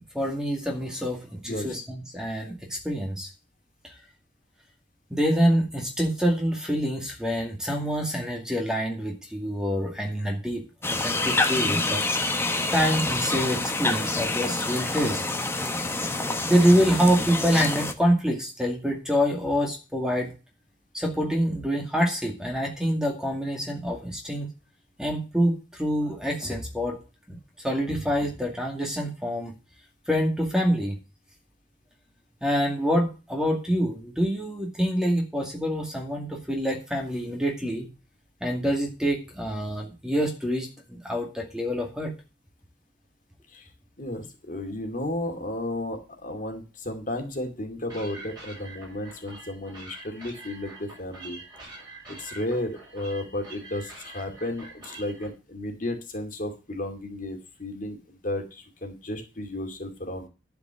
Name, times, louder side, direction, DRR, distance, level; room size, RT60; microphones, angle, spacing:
voice 1, 0.1-3.3 3.8-3.9 5.1-10.6 10.9-12.1 12.7-15.2 16.5-20.3 20.9-24.5 25.0-27.0 27.3-27.4 27.6-29.5 30.1-31.0 32.4-37.9 38.4-42.1, equal, 5° right, 0 dB, 2.2 m, -26 dB
voice 2, 1.4-1.8 43.5-43.7 44.0-51.4 52.1-60.3, left 1 dB, 45° left, 4 dB, 2.4 m, -33 dB
sound 1, 10.8-17.9, left 2 dB, 15° left, 1.1 m, -27 dB
sound 2, 47.9-55.3, right 2 dB, 25° right, 6.6 m, -45 dB
11.5 x 5.2 x 7.6 m, 0.31 s
head